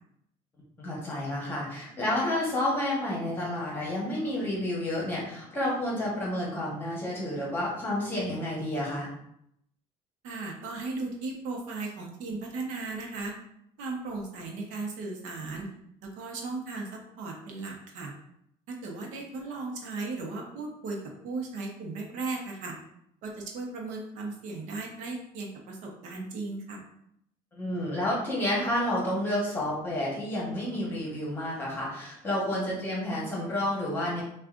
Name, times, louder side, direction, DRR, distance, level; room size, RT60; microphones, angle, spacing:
voice 1, 0.8-9.1 27.6-34.2, left 1 dB, 15° left, -5 dB, 1.1 m, -30 dB
voice 2, 10.2-13.3 13.8-15.7 16.0-18.1 18.7-22.7 23.2-26.8, right 3 dB, 65° right, 0 dB, 0.9 m, -36 dB
6.4 x 2.4 x 2.5 m, 0.75 s
cardioid pair, 180°, 14 cm